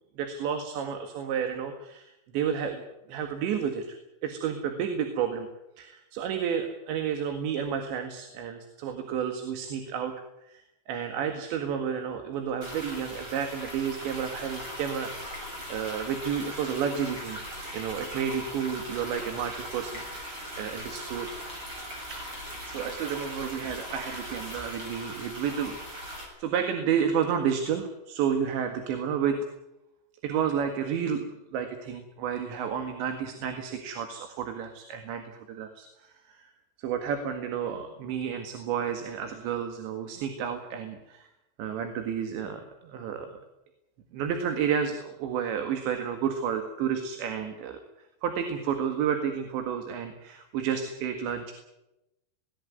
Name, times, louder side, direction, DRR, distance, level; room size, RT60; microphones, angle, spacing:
voice 1, 0.2-2.8 3.1-4.0 4.2-5.5 5.8-10.1 10.5-15.4 15.7-17.4 17.7-21.3 22.1-22.3 22.7-29.4 30.2-31.3 31.5-36.5 36.8-41.3 41.6-43.4 44.1-47.8 48.2-51.5, right 8 dB, 75° right, 5 dB, 4.1 m, -31 dB
sound 1, 12.6-26.2, equal, 25° right, 8.5 m, -39 dB
20.0 x 18.5 x 9.5 m, 0.91 s
omnidirectional pair, 5.3 m